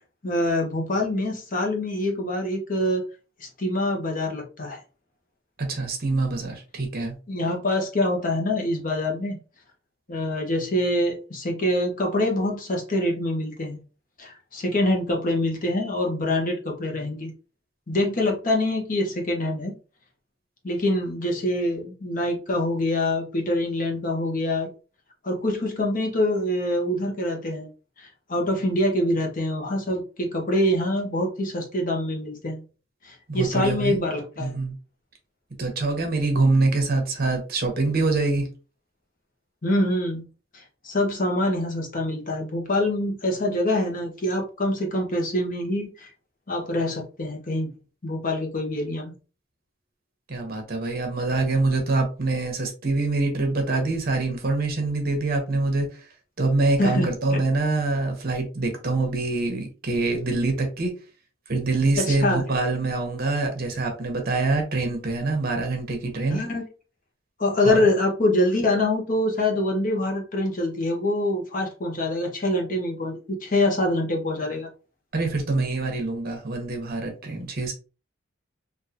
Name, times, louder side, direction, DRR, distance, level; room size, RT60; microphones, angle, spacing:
voice 1, 0.2-3.0 3.4-4.8 7.3-9.4 10.1-13.8 14.2-17.3 17.9-19.7 20.6-24.7 25.2-27.7 28.0-32.6 33.0-34.6 39.6-40.3 40.5-46.1 46.5-47.7 48.0-49.1 56.8-57.4 62.0-62.4 66.3-66.6 67.4-74.7, left 1 dB, 40° left, 1 dB, 0.9 m, -25 dB
voice 2, 5.6-7.1 33.3-34.0 34.4-34.7 35.6-38.5 50.3-56.1 56.4-60.9 61.5-66.4 67.6-67.9 75.1-77.7, right 3 dB, 50° right, 3 dB, 1.0 m, -25 dB
3.7 x 2.5 x 2.8 m, 0.34 s
head